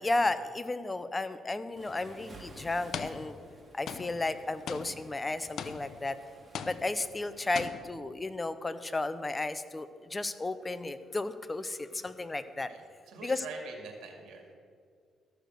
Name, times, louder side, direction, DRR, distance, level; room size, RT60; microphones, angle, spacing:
voice 1, 0.0-3.4 3.7-6.2 6.6-12.7 13.2-13.4, left 2 dB, 20° left, 13 dB, 0.6 m, -33 dB
Waves surf, 1.8-7.7, right 1 dB, 25° right, 2.3 m, -54 dB
sound 1, 1.9-2.1 2.9-3.6 3.9-6.2 6.5-7.3 7.5-8.1, left 7 dB, 65° left, 0.6 m, -41 dB
voice 2, 12.4-14.5, right 5 dB, 85° right, 2 dB, 2.2 m, -46 dB
13.5 x 6.6 x 6.4 m, 2.2 s
cardioid pair, 90°, 0 cm